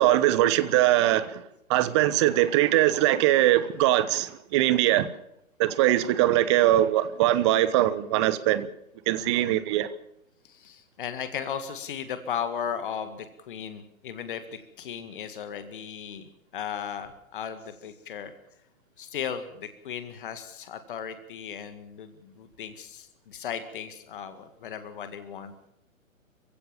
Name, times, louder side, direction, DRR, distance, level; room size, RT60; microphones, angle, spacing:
voice 1, 0.0-1.4 1.7-5.1 5.6-8.7 9.1-9.9, right 14 dB, 20° right, 1.0 m, -22 dB
voice 2, 9.2-9.6 10.4-18.3 19.0-25.5, left 8 dB, 40° left, 1.9 m, -36 dB
27.5 x 16.0 x 7.2 m
figure-of-eight pair, 125°, 41 cm